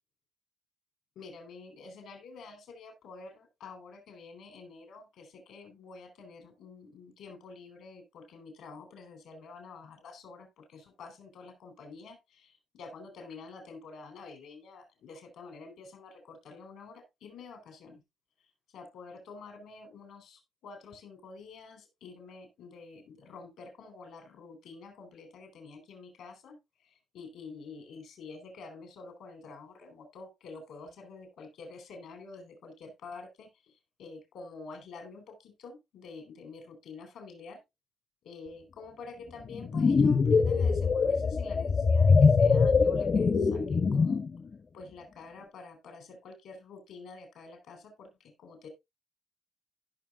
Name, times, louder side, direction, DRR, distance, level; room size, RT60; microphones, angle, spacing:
voice 1, 1.2-18.0 18.7-33.7 34.0-37.6 38.2-44.3 44.7-48.1 48.4-48.7, left 4 dB, 85° left, 4.0 m, -48 dB
sound 1, 39.5-44.3, left 5 dB, 50° left, 1.1 m, -23 dB
16.0 x 6.0 x 2.4 m
cardioid pair, 65°, 0 cm